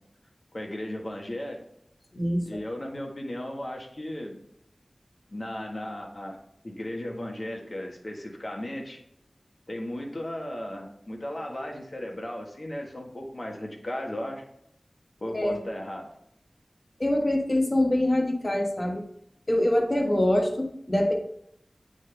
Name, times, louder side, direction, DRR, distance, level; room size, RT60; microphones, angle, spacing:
voice 1, 0.5-1.6 2.4-4.4 5.3-6.4 6.6-9.0 9.7-14.4 15.2-16.1, left 1 dB, 55° left, 1 dB, 1.6 m, -35 dB
voice 2, 2.1-2.6 15.3-15.6 17.0-19.0 19.5-21.1, left 1 dB, 35° left, 1 dB, 1.4 m, -24 dB
8.8 x 3.9 x 3.4 m, 0.73 s
wide cardioid pair, 40°, 0 cm